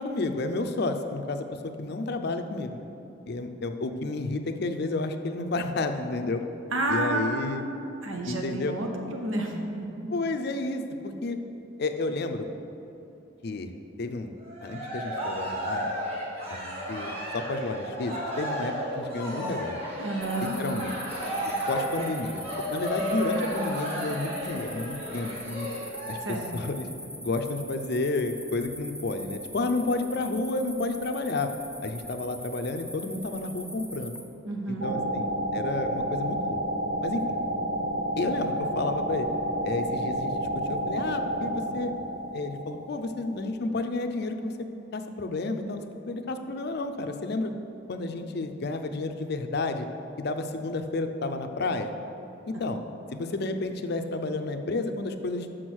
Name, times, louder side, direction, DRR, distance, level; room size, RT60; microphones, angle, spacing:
voice 1, 0.0-1.5 1.8-2.9 3.3-6.4 6.9-7.6 8.3-8.8 10.1-11.4 11.8-12.5 13.4-13.7 14.0-14.3 14.6-15.9 16.5-19.8 20.4-21.0 21.4-22.4 22.7-25.7 26.1-26.9 27.2-31.5 31.8-34.1 34.7-35.3 35.5-36.6 37.0-37.3 38.2-39.3 39.6-41.9 42.3-44.5 44.9-47.5 47.9-49.9 50.2-51.9 52.5-52.8 53.1-55.5, left 2 dB, 55° left, 7 dB, 0.5 m, -31 dB
voice 2, 6.7-10.1 20.0-20.6 26.2-26.5 34.5-34.9, right 2 dB, 85° right, 2 dB, 1.1 m, -30 dB
Cheering, 14.4-26.1, equal, 30° right, 1.7 m, -33 dB
sound 1, 20.2-34.2, equal, 5° right, 0.5 m, -42 dB
sound 2, 34.8-43.4, right 1 dB, 55° right, 0.8 m, -30 dB
6.2 x 6.2 x 6.3 m, 2.9 s
head